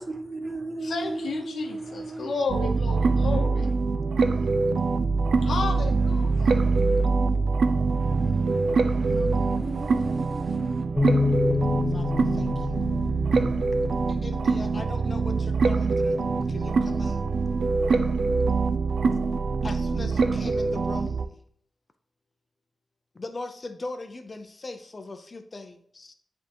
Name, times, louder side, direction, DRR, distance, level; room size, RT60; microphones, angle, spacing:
voice 1, 0.0-2.4 3.1-3.7 5.4-5.5 6.4-7.0 8.0-10.8, right 2 dB, 30° right, 6 dB, 0.7 m, -37 dB
voice 2, 0.8-3.7 5.4-6.6, left 4 dB, 70° left, 2 dB, 0.9 m, -32 dB
sound 1, 2.5-21.3, right 4 dB, 65° right, 0.5 m, -24 dB
Bass guitar, 11.0-17.2, left 3 dB, 5° right, 1.8 m, -30 dB
voice 3, 11.9-12.8 14.1-17.2 19.6-21.4 23.1-26.1, left 2 dB, 30° left, 8 dB, 0.5 m, -40 dB
9.8 x 3.6 x 2.9 m, 0.63 s
wide cardioid pair, 135°, 0 cm